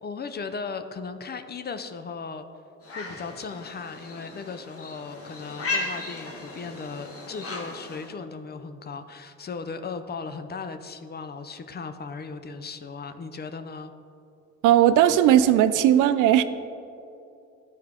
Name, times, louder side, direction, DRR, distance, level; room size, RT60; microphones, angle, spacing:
voice 1, 0.0-2.5 2.9-13.9, left 5 dB, 35° left, 9 dB, 0.5 m, -37 dB
sound 1, 2.8-8.1, left 3 dB, 50° left, 1.4 m, -36 dB
voice 2, 14.6-16.4, right 11 dB, 85° right, 12 dB, 0.5 m, -17 dB
12.5 x 4.5 x 3.6 m, 2.6 s
cardioid pair, 90°, 30 cm